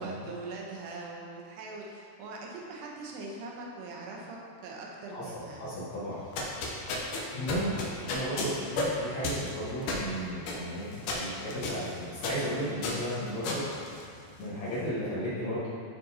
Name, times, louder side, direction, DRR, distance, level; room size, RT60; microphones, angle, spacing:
voice 1, 0.0-5.8, right 3 dB, 80° right, -2 dB, 2.9 m, -42 dB
voice 2, 5.1-6.5 7.3-7.8 8.1-10.9 11.1-13.6 14.4-15.7, equal, 60° left, -11 dB, 2.1 m, -34 dB
sound 1, 6.2-14.6, left 2 dB, 90° left, 1.8 m, -34 dB
11.5 x 4.2 x 2.8 m, 2.5 s
omnidirectional pair, 4.8 m